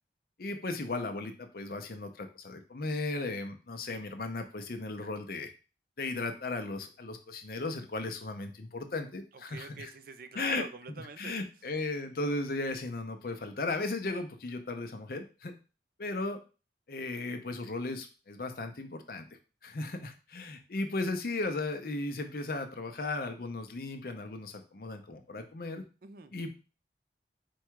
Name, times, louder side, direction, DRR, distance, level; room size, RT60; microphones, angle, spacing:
voice 1, 0.4-5.5 6.0-9.9 10.3-10.6 11.2-15.5 16.0-16.4 16.9-19.3 19.6-25.8 26.3-26.6, left 2 dB, 55° left, 6 dB, 0.6 m, -36 dB
voice 2, 9.3-11.4 26.0-26.3, right 4 dB, 50° right, 10 dB, 0.4 m, -45 dB
4.6 x 2.3 x 4.5 m, 0.33 s
head